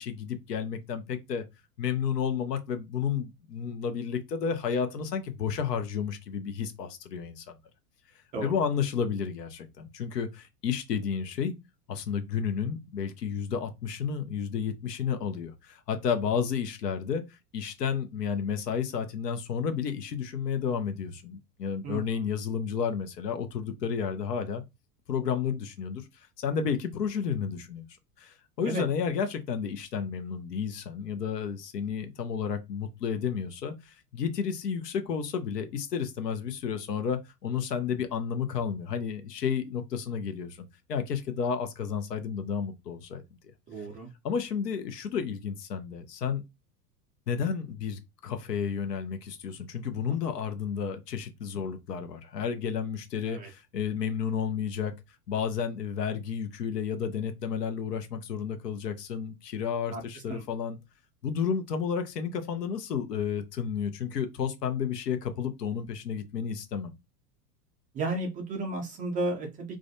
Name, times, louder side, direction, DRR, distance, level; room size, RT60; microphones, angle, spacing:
voice 1, 0.0-1.4 1.8-7.6 8.4-11.6 11.9-17.2 17.5-24.6 25.1-26.0 26.4-27.8 28.2-40.6 40.9-43.2 43.8-43.9 44.2-46.4 47.3-54.9 55.3-60.8 61.2-66.9, left 7 dB, 85° left, 0.7 m, -31 dB
voice 2, 21.8-22.2 28.6-28.8 43.7-44.1 53.2-53.5 59.9-60.0 60.3-60.4 67.9-69.8, right 2 dB, 20° right, 0.3 m, -33 dB
2.4 x 2.1 x 2.6 m
hypercardioid pair, 90°, 47 cm